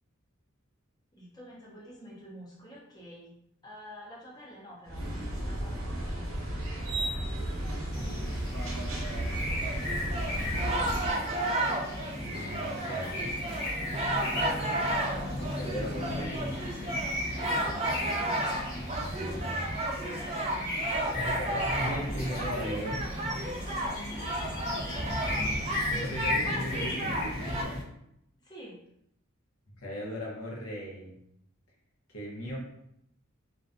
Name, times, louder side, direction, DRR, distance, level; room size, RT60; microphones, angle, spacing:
voice 1, 1.1-3.3 3.6-6.5 12.7-14.3 20.1-21.3 23.8-24.5 26.3-26.5 28.4-28.8, equal, 20° left, -5 dB, 0.6 m, -49 dB
sound 1, 4.8-11.1, right 1 dB, 75° right, 0.7 m, -33 dB
sound 2, 7.9-27.8, left 1 dB, 60° left, 0.9 m, -35 dB
sound 3, 9.6-27.6, right 1 dB, 30° right, 0.3 m, -33 dB
voice 2, 12.1-13.3 15.4-16.6 18.7-19.7 21.1-23.1 25.9-27.8 29.7-31.2 32.1-32.6, equal, 85° left, -3 dB, 0.8 m, -38 dB
2.5 x 2.2 x 2.4 m, 0.76 s
head